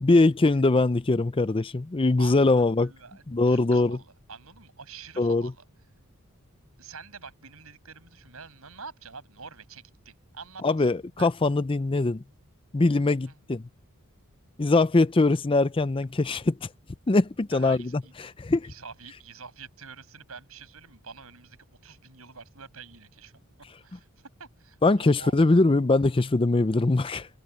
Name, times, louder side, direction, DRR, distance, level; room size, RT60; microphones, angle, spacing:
voice 1, 0.0-2.9 3.3-4.0 5.2-5.5 10.6-12.2 12.7-13.6 14.6-16.6 17.1-18.7 24.8-27.3, left 2 dB, 25° left, 0.5 m, -22 dB
voice 2, 2.2-5.6 6.8-10.9 11.2-11.3 13.3-13.4 17.5-18.1 18.6-21.6 21.8-23.3 23.8-24.1 24.4-25.5, right 5 dB, 75° right, 6.9 m, -46 dB
head